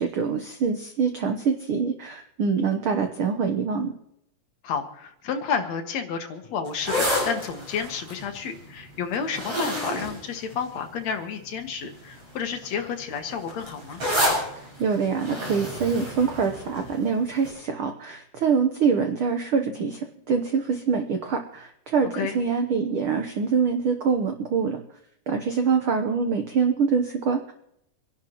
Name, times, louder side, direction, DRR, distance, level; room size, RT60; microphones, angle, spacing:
voice 1, 0.0-3.9 14.8-24.8 25.3-27.5, right 5 dB, 75° right, 5 dB, 1.2 m, -25 dB
voice 2, 4.6-14.0 22.0-22.3, left 6 dB, 65° left, 6 dB, 2.2 m, -31 dB
sound 1, 6.7-11.1 11.8-12.1 12.4-17.0 17.4-17.5, equal, 45° right, 7.6 m, -29 dB
27.0 x 11.0 x 3.0 m, 0.75 s
omnidirectional pair, 3.7 m